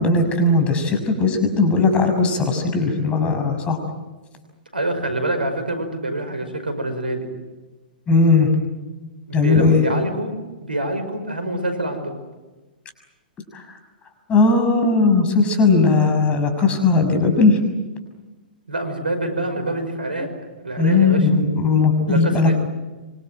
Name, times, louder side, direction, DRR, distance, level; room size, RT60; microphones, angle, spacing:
voice 1, 0.0-3.8 8.1-8.5 9.3-9.9 13.5-13.7 14.3-17.6 20.8-22.5, left 3 dB, 25° left, 6 dB, 6.3 m, -17 dB
voice 2, 4.7-7.3 9.3-10.4 10.6-12.1 18.7-20.3 20.6-21.2 22.1-22.5, right 1 dB, 90° right, 8 dB, 5.5 m, -26 dB
26.0 x 25.0 x 7.9 m, 1.2 s
figure-of-eight pair, 115°, 5 cm